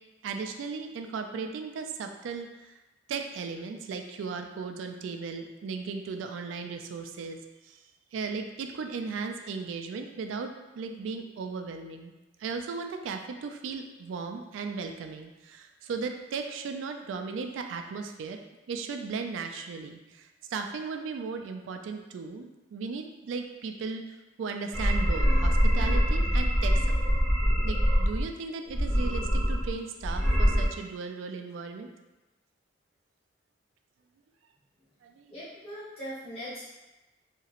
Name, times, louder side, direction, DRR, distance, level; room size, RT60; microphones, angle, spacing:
voice 1, 0.2-2.7 3.1-7.8 8.1-12.1 12.4-18.4 18.7-24.0 24.4-27.2 27.6-31.9 35.0-35.3, right 5 dB, 85° right, 5 dB, 0.3 m, -36 dB
sound 1, 24.7-28.2 28.7-29.7 30.0-30.6, equal, 5° left, 0.9 m, -24 dB
voice 2, 35.3-36.6, equal, 30° left, -12 dB, 1.1 m, -40 dB
2.9 x 2.9 x 2.4 m, 1.1 s
head